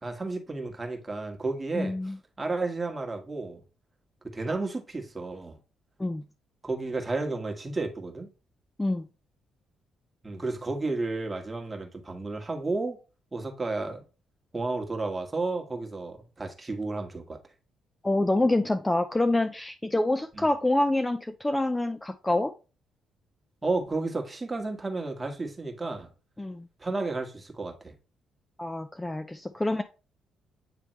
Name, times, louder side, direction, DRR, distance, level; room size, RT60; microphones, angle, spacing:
voice 1, 0.0-3.6 4.2-5.6 6.6-8.3 10.2-13.0 13.3-14.0 14.5-17.4 20.3-20.5 23.6-26.1 26.8-27.9, right 3 dB, 20° right, 1.5 m, -32 dB
voice 2, 1.7-2.2 6.0-6.2 8.8-9.1 18.0-22.5 26.4-26.7 28.6-29.8, left 2 dB, 15° left, 0.5 m, -26 dB
9.0 x 3.4 x 3.2 m
cardioid pair, 80°, 0 cm